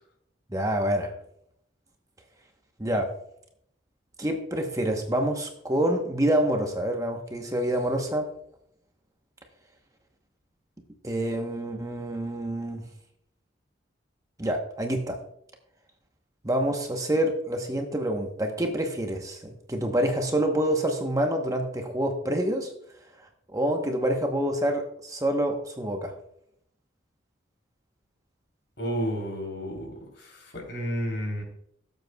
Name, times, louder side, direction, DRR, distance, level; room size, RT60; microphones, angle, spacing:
voice 1, 0.5-1.1 2.8-3.1 4.2-8.3 11.0-12.8 14.4-15.2 16.4-22.7 23.5-26.1, right 1 dB, 15° right, 3 dB, 0.9 m, -27 dB
voice 2, 28.8-29.9 30.2-30.3 30.7-31.4, equal, 60° left, 1 dB, 3.4 m, -30 dB
17.0 x 8.0 x 2.3 m, 0.72 s
head